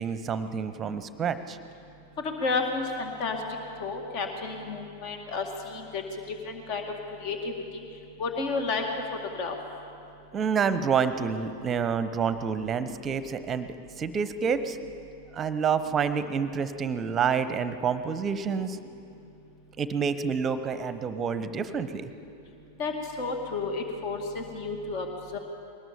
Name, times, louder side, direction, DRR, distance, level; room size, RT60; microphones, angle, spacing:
voice 1, 0.0-1.6 10.3-14.8 15.3-18.8 19.8-22.1, right 6 dB, 25° right, 12 dB, 0.9 m, -28 dB
voice 2, 2.2-3.4 3.8-6.0 6.5-6.8 7.2-7.8 8.2-8.8 9.4-9.6 22.8-22.9 23.2-25.1 25.3-25.4, left 4 dB, 45° left, 4 dB, 2.1 m, -31 dB
21.5 x 18.5 x 7.1 m, 2.7 s
figure-of-eight pair, 90°, 0 cm